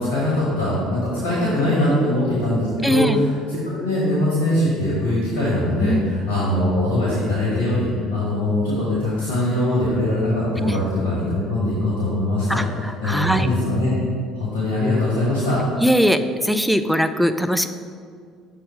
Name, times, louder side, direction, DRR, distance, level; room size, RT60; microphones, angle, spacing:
voice 1, 0.0-3.1 3.8-12.6 13.0-13.9 14.3-15.6, left 1 dB, 70° left, -7 dB, 1.7 m, -22 dB
voice 2, 2.8-3.2 5.8-6.0 10.6-10.8 12.5-13.5 15.8-17.7, equal, ahead, 9 dB, 0.3 m, -21 dB
6.8 x 3.6 x 4.8 m, 2.1 s
figure-of-eight pair, 55°, 0 cm